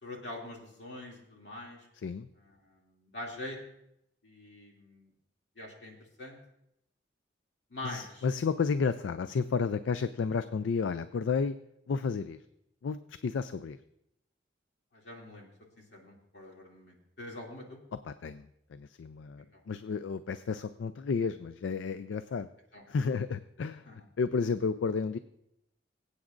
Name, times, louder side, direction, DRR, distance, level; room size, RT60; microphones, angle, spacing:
voice 1, 0.0-1.9 2.3-3.6 4.2-5.1 5.6-6.4 7.7-8.3 14.9-15.5 15.8-17.8 19.4-19.6 22.7-22.8 23.8-24.1, left 1 dB, 65° left, -1 dB, 2.6 m, -44 dB
voice 2, 7.8-11.6 11.9-12.4 12.8-13.8 18.1-18.4 18.7-22.5 22.9-23.9 24.2-25.2, left 5 dB, 80° left, 12 dB, 0.4 m, -32 dB
23.0 x 8.4 x 2.6 m, 0.80 s
head